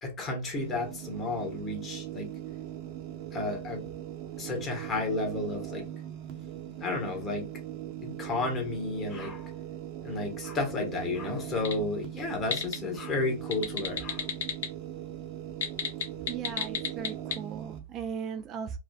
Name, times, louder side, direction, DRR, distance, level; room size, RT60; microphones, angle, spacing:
voice 1, 0.0-2.3 3.3-3.9 4.4-5.9 6.8-7.5 8.0-9.5 10.0-14.3, left 2 dB, 20° left, 1.4 m, -32 dB
sound 1, 0.6-17.8, right 11 dB, 45° right, 0.8 m, -40 dB
sound 2, 11.5-11.8 12.2-12.8 13.4-14.7 15.5-17.4, left 8 dB, 70° left, 1.0 m, -30 dB
voice 2, 16.3-18.8, right 7 dB, 30° right, 0.3 m, -37 dB
4.8 x 2.4 x 2.4 m
hypercardioid pair, 135°, 0 cm